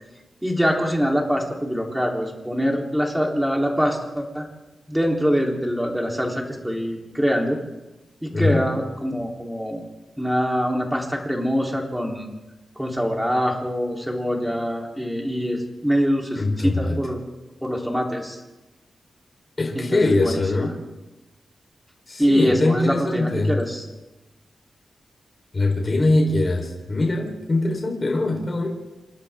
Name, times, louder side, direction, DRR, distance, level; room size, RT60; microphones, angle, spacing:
voice 1, 0.4-4.5 4.9-7.6 8.2-9.8 10.2-12.3 12.8-17.2 17.6-18.4 19.7-20.7 22.2-23.9, equal, 5° right, -1 dB, 3.6 m, -24 dB
voice 2, 8.3-8.7 16.3-17.0 19.6-20.7 22.1-23.5 25.5-28.7, left 2 dB, 30° left, 1 dB, 4.1 m, -22 dB
29.0 x 25.5 x 3.7 m, 1.1 s
wide cardioid pair, 145°, 0 cm